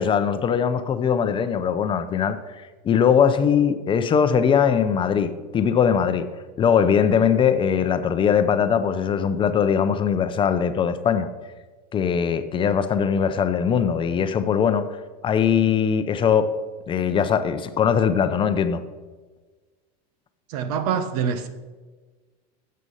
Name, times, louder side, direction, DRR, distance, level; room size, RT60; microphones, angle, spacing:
voice 1, 0.0-6.3 6.6-11.3 11.9-15.0 15.2-16.5 16.9-18.8, left 7 dB, 25° left, 10 dB, 0.6 m, -21 dB
voice 2, 20.5-21.5, right 7 dB, 75° right, 11 dB, 1.1 m, -25 dB
9.8 x 7.6 x 5.4 m, 1.3 s
supercardioid pair, 135°, 20 cm